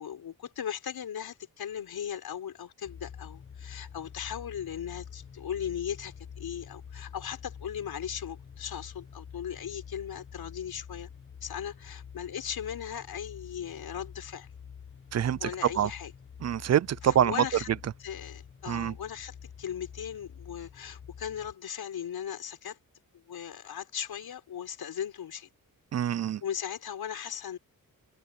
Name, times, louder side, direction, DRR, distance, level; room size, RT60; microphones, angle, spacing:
voice 1, 0.0-11.1 11.4-14.5 15.4-16.1 17.0-17.7 18.0-22.8 23.3-25.5 26.4-27.6, left 9 dB, 85° left, 4.4 m, -38 dB
sound 1, 2.8-21.5, left 7 dB, 35° left, 1.1 m, -47 dB
voice 2, 15.1-15.9 16.4-17.4 18.7-18.9 25.9-26.4, right 10 dB, 45° right, 0.4 m, -26 dB
wide cardioid pair, 150°, 36 cm